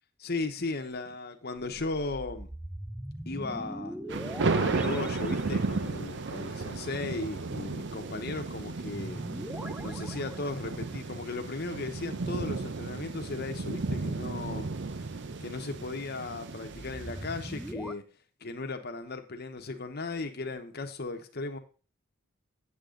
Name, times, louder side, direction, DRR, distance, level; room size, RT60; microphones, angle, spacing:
voice 1, 0.2-2.5 3.3-4.0 4.6-9.2 9.8-14.7 15.4-18.0 18.4-21.6, left 3 dB, 50° left, 1.1 m, -36 dB
sound 1, 1.7-6.1 8.9-11.0 16.6-17.9, right 1 dB, 5° right, 0.4 m, -42 dB
sound 2, 4.1-17.7, right 3 dB, 60° right, 0.6 m, -34 dB
8.5 x 7.5 x 3.8 m
head